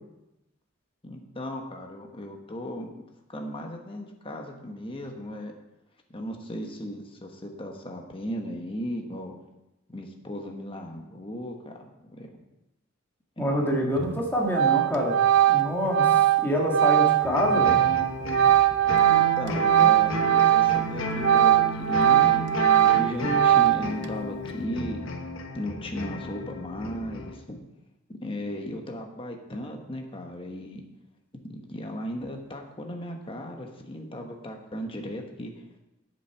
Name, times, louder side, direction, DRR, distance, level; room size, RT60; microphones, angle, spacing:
voice 1, 1.0-2.9 3.3-5.5 6.1-9.3 9.9-11.8 12.1-12.3 13.4-13.6 19.1-25.0 25.5-27.6 28.2-30.8 31.4-35.5, equal, 25° left, 3 dB, 1.2 m, -36 dB
voice 2, 13.4-15.2 15.5-16.1 16.4-17.8, equal, 10° left, -2 dB, 1.7 m, -26 dB
Organ, 14.0-14.2 14.5-20.9 21.2-24.1, right 11 dB, 60° right, 0.6 m, -21 dB
sound 1, 17.2-27.4, left 1 dB, 75° left, 1.3 m, -33 dB
8.7 x 7.4 x 5.9 m, 0.94 s
head